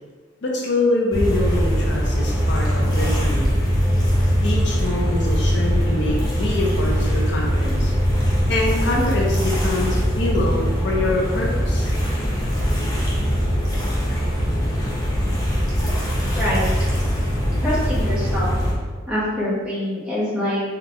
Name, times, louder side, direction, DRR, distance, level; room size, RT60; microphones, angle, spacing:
voice 1, 0.4-3.5 4.4-7.9 8.5-11.9, left 2 dB, 70° left, -2 dB, 0.6 m, -25 dB
sound 1, 1.1-18.7, equal, 20° left, 0.7 m, -21 dB
voice 2, 16.3-16.7 17.6-18.5 19.1-20.6, left 1 dB, 5° right, -10 dB, 1.1 m, -24 dB
3.6 x 2.3 x 2.9 m, 1.4 s
head